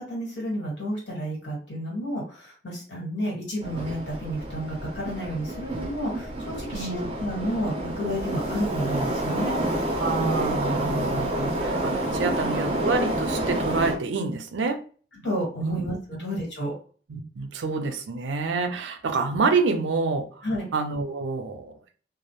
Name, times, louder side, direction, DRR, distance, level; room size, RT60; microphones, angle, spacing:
voice 1, 0.0-9.6 15.2-16.7 20.4-20.7, equal, 80° left, -2 dB, 1.4 m, -31 dB
Subway metro underground, 3.6-14.0, right 1 dB, 30° right, 0.6 m, -29 dB
voice 2, 6.7-7.1 10.0-14.8 15.6-15.8 17.1-20.5 20.7-21.7, right 4 dB, 90° right, 7 dB, 0.5 m, -27 dB
2.3 x 2.0 x 2.9 m, 0.40 s
head